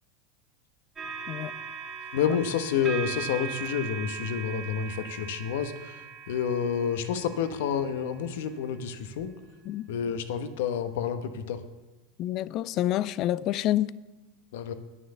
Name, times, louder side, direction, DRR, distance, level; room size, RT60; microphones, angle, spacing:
sound 1, 1.0-8.4 9.2-9.4, right 6 dB, 30° right, 2.6 m, -39 dB
voice 1, 2.1-9.3 9.9-11.6 14.5-14.7, left 7 dB, 75° left, 1.1 m, -29 dB
voice 2, 12.2-13.9, left 13 dB, 50° left, 0.4 m, -28 dB
10.0 x 9.5 x 6.9 m
hypercardioid pair, 100°, 0 cm